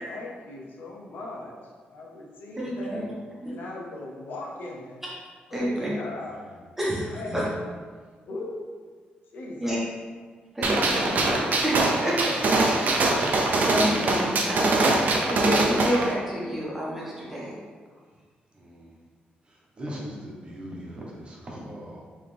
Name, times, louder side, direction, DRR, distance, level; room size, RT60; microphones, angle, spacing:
voice 1, 0.0-1.5 1.9-3.1 3.5-5.0 5.5-6.4 6.8-7.4 8.3-8.6 9.3-9.8, left 2 dB, 75° left, -2 dB, 0.8 m, -38 dB
voice 2, 2.6-3.0 3.4-3.6 5.5-5.9 6.8-7.4 9.6-9.8 10.5-12.1 12.5-17.6, equal, 10° right, -6 dB, 1.2 m, -29 dB
Gunshot gunfire, 10.6-16.1, right 2 dB, 55° right, 0.6 m, -23 dB
voice 3, 18.5-19.0 19.4-22.0, equal, 30° right, -4 dB, 1.0 m, -40 dB
3.9 x 3.2 x 3.4 m, 1.5 s
cardioid pair, 110°, 3 cm